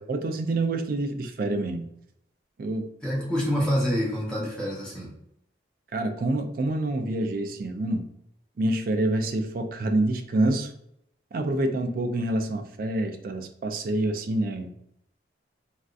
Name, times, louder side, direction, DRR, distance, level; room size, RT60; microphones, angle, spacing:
voice 1, 0.1-1.9 2.6-2.9 5.9-8.1 8.6-10.7 11.3-14.7, right 2 dB, 50° right, 6 dB, 0.3 m, -27 dB
voice 2, 3.0-5.1, equal, 5° left, -6 dB, 0.8 m, -26 dB
3.4 x 2.5 x 2.4 m, 0.77 s
head